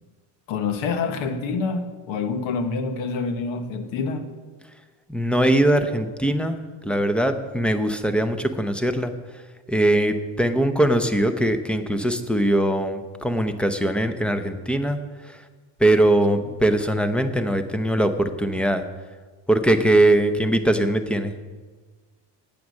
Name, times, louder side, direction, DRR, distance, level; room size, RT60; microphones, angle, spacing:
voice 1, 0.5-4.3, left 4 dB, 80° left, 1.2 m, -27 dB
voice 2, 5.1-6.6 6.8-9.1 9.7-15.0 15.8-18.8 19.5-21.3, right 1 dB, ahead, 0.6 m, -21 dB
9.2 x 8.6 x 6.4 m
cardioid pair, 120°, 46 cm